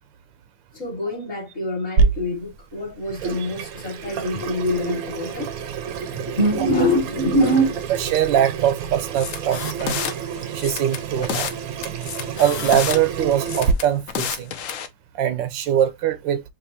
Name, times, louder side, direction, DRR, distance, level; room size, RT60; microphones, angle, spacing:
voice 1, 0.7-5.5 6.0-7.9, equal, 40° left, 1.5 m, -24 dB
Water tap faucet / Sink (filling or washing), 2.0-13.7, right 6 dB, 65° right, 0.9 m, -28 dB
voice 2, 8.0-10.0 10.5-11.5 12.4-14.5 15.1-16.4, right 10 dB, 85° right, 1.3 m, -22 dB
sound 1, 9.2-10.1 10.6-11.6 11.8-13.0 13.4-14.9, left 8 dB, 70° left, 0.8 m, -29 dB
5.0 x 2.7 x 2.6 m
omnidirectional pair, 2.0 m